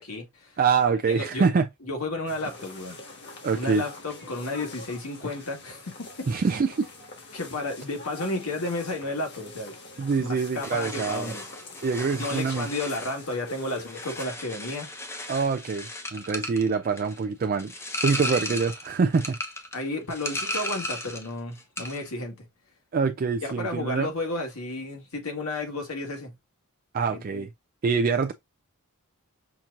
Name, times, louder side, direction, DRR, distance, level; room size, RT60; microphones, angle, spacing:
voice 1, 0.0-0.6 1.0-1.5 1.8-3.0 3.5-6.3 7.3-9.8 10.2-11.4 12.2-14.9 18.4-18.6 19.7-22.4 23.4-26.3 27.1-27.5, left 2 dB, 70° left, 1.8 m, -32 dB
voice 2, 0.6-1.7 3.4-3.8 6.3-6.9 10.0-11.3 11.8-12.7 15.3-17.7 18.0-19.4 22.9-24.1 26.9-27.5 27.8-28.3, right 5 dB, 40° right, 0.4 m, -25 dB
sound 1, 2.3-14.2, left 2 dB, 50° left, 1.4 m, -44 dB
sound 2, 10.6-21.3 21.6-22.1, left 1 dB, 10° left, 0.8 m, -35 dB
5.8 x 2.9 x 2.5 m
head